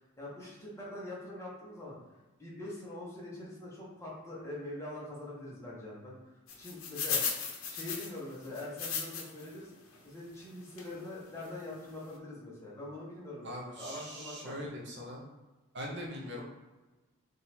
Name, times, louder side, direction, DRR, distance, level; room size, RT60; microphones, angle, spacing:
voice 1, 0.2-2.0 2.4-6.2 6.6-7.2 7.7-9.7 10.0-14.6, left 1 dB, 15° left, -6 dB, 1.1 m, -43 dB
sound 1, 6.5-9.5 9.9-10.0 10.8-10.9 11.4-11.5 11.7-11.9, left 6 dB, 65° left, 0.7 m, -36 dB
voice 2, 13.4-15.2 15.7-16.4, equal, 50° right, -2 dB, 0.8 m, -41 dB
3.9 x 2.6 x 4.3 m, 1.2 s
head